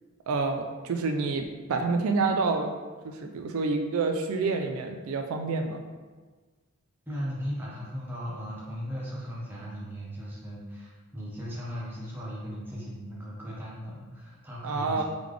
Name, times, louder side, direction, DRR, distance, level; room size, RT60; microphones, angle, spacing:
voice 1, 0.3-1.4 1.7-2.7 3.0-5.8 14.6-15.0, right 4 dB, 75° right, 5 dB, 0.4 m, -28 dB
voice 2, 7.1-15.0, equal, 10° right, -7 dB, 0.9 m, -37 dB
3.8 x 3.4 x 3.2 m, 1.4 s
head